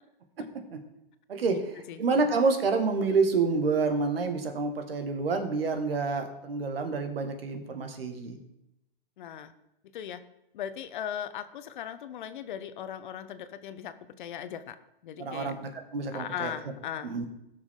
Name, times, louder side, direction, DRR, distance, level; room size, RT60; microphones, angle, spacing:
voice 1, 1.3-8.4 15.2-16.5 17.0-17.3, right 4 dB, 80° right, 6 dB, 1.9 m, -28 dB
voice 2, 9.2-9.5 9.9-10.2 10.5-14.7 15.0-15.5 16.1-17.1, left 9 dB, 55° left, 12 dB, 0.9 m, -38 dB
18.0 x 6.2 x 3.8 m, 0.86 s
hypercardioid pair, 135°, 29 cm